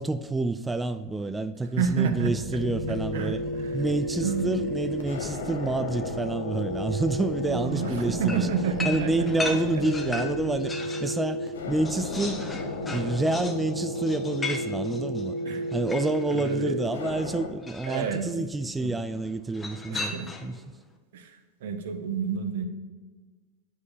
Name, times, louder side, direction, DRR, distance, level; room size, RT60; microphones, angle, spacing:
voice 1, 0.0-3.4 3.7-8.5 8.8-10.7 11.0-12.5 12.9-15.3 15.7-20.1 20.4-20.6, right 2 dB, 10° right, 0.3 m, -28 dB
sound 1, 1.8-17.5, left 1 dB, 90° left, 0.9 m, -33 dB
Animal, 1.8-6.4 6.7-10.6, right 5 dB, 35° right, 0.7 m, -42 dB
voice 2, 1.8-2.3 2.9-3.3 3.6-3.8 4.2-4.5 7.5-9.1 15.5-15.6 16.3-16.8 17.9-18.3 18.8-18.9 19.9-20.3 21.1-22.6, right 6 dB, 75° right, 0.9 m, -29 dB
sound 2, 8.3-11.2 11.5-16.6 17.6-18.2 19.5-20.6, left 3 dB, 15° left, 0.9 m, -37 dB
8.3 x 5.1 x 4.1 m
hypercardioid pair, 105°, 0 cm